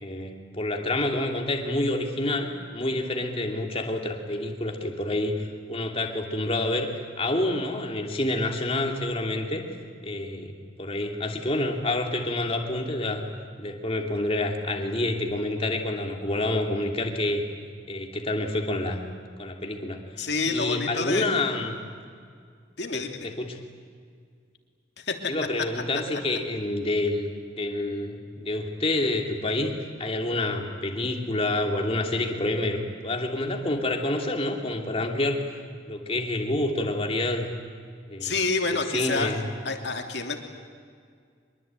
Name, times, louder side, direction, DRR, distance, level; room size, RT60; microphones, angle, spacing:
voice 1, 0.0-6.9 7.2-9.6 10.0-10.5 10.8-13.2 13.6-17.4 17.9-19.0 19.4-21.8 22.9-23.6 25.3-27.3 27.6-35.4 35.9-37.5 38.1-38.3 38.7-39.4, left 2 dB, 30° left, 2 dB, 2.9 m, -28 dB
voice 2, 20.2-21.3 22.8-23.3 25.0-25.3 38.2-39.4 39.6-40.4, left 3 dB, 60° left, 4 dB, 2.9 m, -28 dB
24.5 x 23.0 x 9.1 m, 2.1 s
head